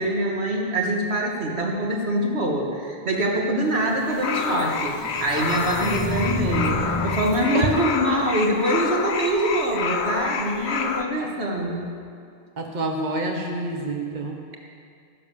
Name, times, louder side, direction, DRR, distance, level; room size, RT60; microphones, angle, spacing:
voice 1, 0.0-11.8, right 1 dB, 80° right, -1 dB, 2.2 m, -24 dB
sound 1, 3.7-7.4, left 1 dB, 20° left, 2.1 m, -30 dB
sound 2, 4.1-11.0, left 6 dB, 80° left, 1.1 m, -28 dB
voice 2, 12.6-14.4, right 2 dB, 45° right, 1 dB, 1.3 m, -27 dB
14.5 x 10.5 x 7.0 m, 2.3 s
omnidirectional pair, 1.1 m